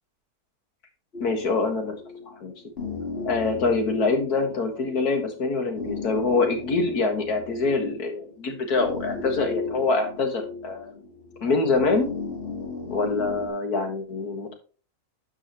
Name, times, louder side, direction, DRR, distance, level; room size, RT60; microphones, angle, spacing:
sound 1, 1.1-13.5, left 4 dB, 40° left, 1.9 m, -36 dB
voice 1, 1.2-2.0 2.3-2.5 3.2-10.9 11.4-12.1 12.9-14.5, left 3 dB, 80° left, 5 dB, 2.2 m, -25 dB
12.0 x 4.9 x 3.0 m, 0.37 s
omnidirectional pair, 1.6 m